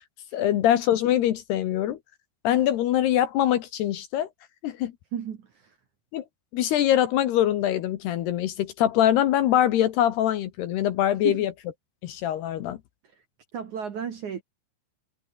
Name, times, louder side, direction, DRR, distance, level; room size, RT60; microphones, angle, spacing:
voice 1, 0.3-2.0 2.4-4.3 4.6-4.9 6.1-6.2 6.5-11.5 12.0-12.8, left 11 dB, 70° left, 2.9 m, -23 dB
voice 2, 5.1-5.7 11.2-11.4 13.5-14.4, right 8 dB, 55° right, 2.5 m, -33 dB
omnidirectional pair, 5.6 m